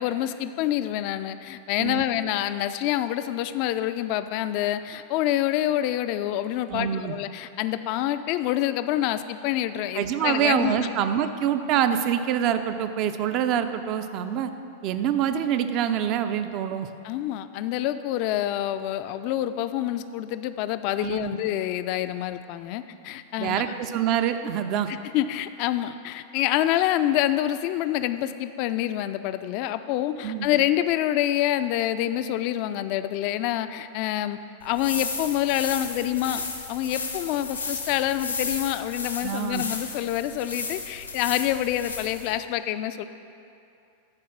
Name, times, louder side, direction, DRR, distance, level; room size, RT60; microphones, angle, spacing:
voice 1, 0.0-10.7 17.0-23.7 24.9-43.0, left 13 dB, 45° left, 11 dB, 0.3 m, -27 dB
voice 2, 6.7-7.2 10.0-14.5 14.8-16.9 21.0-21.4 23.4-24.9 30.2-30.5 39.2-39.6, right 9 dB, 40° right, 9 dB, 0.4 m, -25 dB
sound 1, 34.6-42.4, left 4 dB, 80° left, 0.8 m, -34 dB
10.5 x 4.5 x 6.0 m, 2.7 s
figure-of-eight pair, 90°, 0 cm